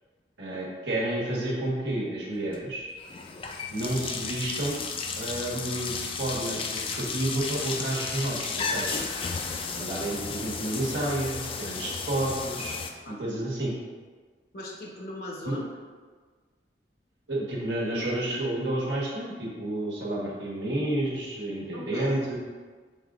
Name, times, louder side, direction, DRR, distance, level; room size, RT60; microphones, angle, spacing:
voice 1, 0.4-2.8 3.7-4.8 5.2-9.1 9.7-12.7 13.1-13.7 15.4-15.5 17.3-22.4, right 1 dB, 90° right, -5 dB, 1.2 m, -30 dB
sound 1, 2.4-2.6 3.0-12.9, left 5 dB, 30° left, 0.3 m, -33 dB
voice 2, 13.0-13.3 14.5-15.7 21.7-22.2, left 1 dB, 60° left, -1 dB, 0.8 m, -39 dB
5.4 x 3.5 x 2.4 m, 1.5 s
head